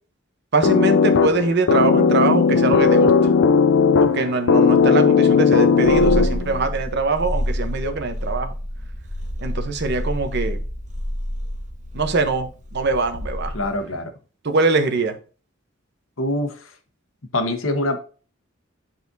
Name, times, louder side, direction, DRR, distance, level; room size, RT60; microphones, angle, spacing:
voice 1, 0.5-3.1 4.0-8.5 9.4-10.6 11.9-13.5 14.4-15.2, right 3 dB, 55° right, 1.0 m, -22 dB
sound 1, 0.6-6.6, left 5 dB, 70° left, 0.4 m, -16 dB
Purr, 5.8-13.8, equal, 40° right, 1.5 m, -28 dB
voice 2, 13.5-14.1 16.2-16.7 17.3-18.0, left 1 dB, 85° left, 1.2 m, -24 dB
10.5 x 4.3 x 2.7 m
head